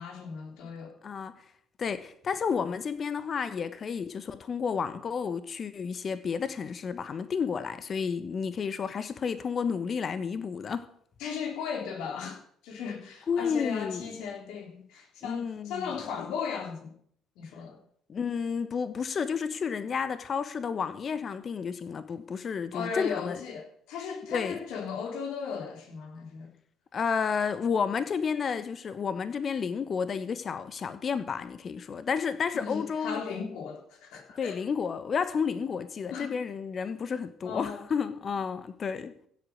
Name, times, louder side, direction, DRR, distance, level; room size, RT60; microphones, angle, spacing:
voice 1, 0.0-0.9 11.2-16.9 17.4-17.8 22.7-26.5 32.5-34.6 36.1-36.3 37.4-37.8, left 6 dB, 65° left, 3.7 m, -36 dB
voice 2, 1.0-1.3 1.8-10.9 13.3-14.1 15.2-15.9 18.1-23.4 24.3-24.6 26.9-33.2 34.4-39.1, left 6 dB, 40° left, 1.2 m, -31 dB
16.0 x 8.1 x 6.4 m
figure-of-eight pair, 55°, 0 cm